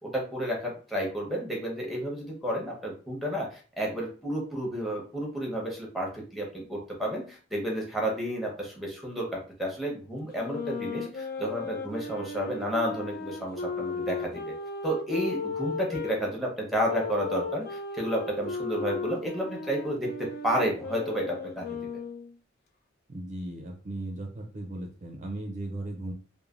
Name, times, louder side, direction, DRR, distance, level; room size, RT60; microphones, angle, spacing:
voice 1, 0.0-14.5 14.8-21.7, equal, ahead, -2 dB, 0.8 m, -31 dB
sound 1, 10.3-16.2 16.9-22.3, left 4 dB, 55° left, 0.3 m, -36 dB
voice 2, 23.1-26.1, right 1 dB, 40° right, 1 dB, 0.4 m, -37 dB
3.1 x 2.1 x 2.4 m, 0.38 s
head